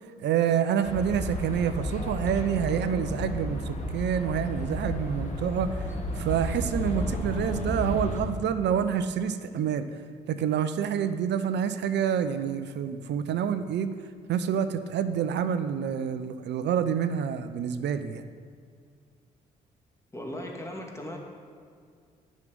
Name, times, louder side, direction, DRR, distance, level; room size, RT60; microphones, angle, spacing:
voice 1, 0.2-5.9 6.1-9.9 10.3-13.9 14.3-18.2, right 8 dB, 60° right, 11 dB, 0.7 m, -27 dB
sound 1, 0.8-8.2, left 1 dB, 35° left, 2.3 m, -32 dB
voice 2, 20.1-21.2, left 1 dB, 15° left, 0 dB, 2.4 m, -37 dB
10.5 x 6.4 x 7.9 m, 2.2 s
hypercardioid pair, 45°, 20 cm